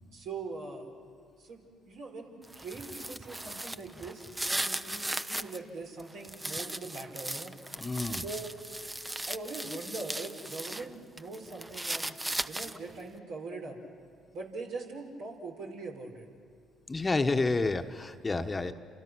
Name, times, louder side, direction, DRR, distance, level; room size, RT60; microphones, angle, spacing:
voice 1, 0.1-0.9 1.4-7.5 8.2-8.5 9.3-12.2 12.5-13.8 14.3-16.3, right 3 dB, 70° right, -1 dB, 5.1 m, -42 dB
sound 1, 2.4-5.6 6.0-10.9 11.2-12.9, right 1 dB, 15° right, 0.9 m, -37 dB
voice 2, 7.8-8.2 16.9-18.7, left 3 dB, 25° left, 7 dB, 1.3 m, -29 dB
29.5 x 27.5 x 6.3 m, 2.2 s
hypercardioid pair, 55°, 0 cm